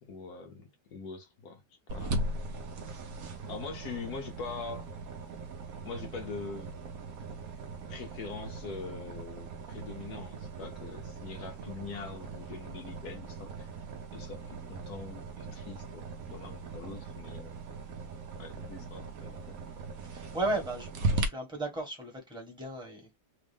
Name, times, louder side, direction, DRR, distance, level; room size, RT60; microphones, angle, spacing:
voice 1, 0.0-1.6 1.9-2.2 3.5-4.9 5.8-6.7 7.9-13.7 14.1-17.6 18.4-19.6, left 4 dB, 65° left, 1.0 m, -43 dB
sound 1, 1.9-21.3, right 3 dB, 65° right, 0.9 m, -39 dB
voice 2, 20.0-23.2, right 2 dB, 5° right, 1.1 m, -35 dB
3.5 x 2.5 x 3.4 m
omnidirectional pair, 2.3 m